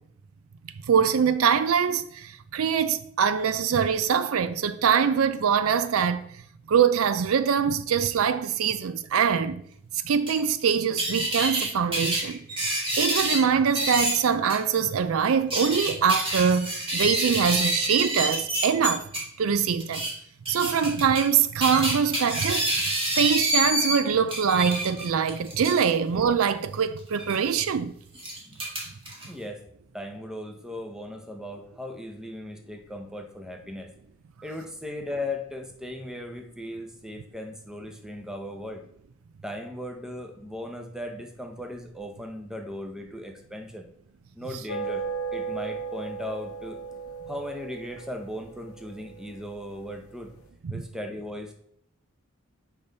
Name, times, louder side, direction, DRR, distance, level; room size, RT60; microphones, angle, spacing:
voice 1, 0.9-6.3 6.7-9.6 10.0-12.5 13.0-19.0 19.4-20.0 20.5-22.7 23.2-27.9 50.6-50.8, right 7 dB, 75° right, 0.4 m, -23 dB
sound 1, 10.3-10.4 11.0-11.7 11.9-13.4 13.7-14.1 14.5-14.6 15.3-19.2 19.8-20.1 20.4-21.3 21.6-24.0 24.3-25.8 27.1-27.4 28.1-29.2, right 1 dB, 25° right, 1.9 m, -27 dB
voice 2, 29.2-29.6 29.9-33.9 34.4-38.8 39.4-43.9 44.4-45.1 45.3-46.8 47.3-50.3 50.7-51.5, left 1 dB, 5° right, 0.7 m, -37 dB
sound 2, 44.7-50.2, right 4 dB, 90° left, 0.7 m, -36 dB
7.0 x 5.2 x 3.9 m
head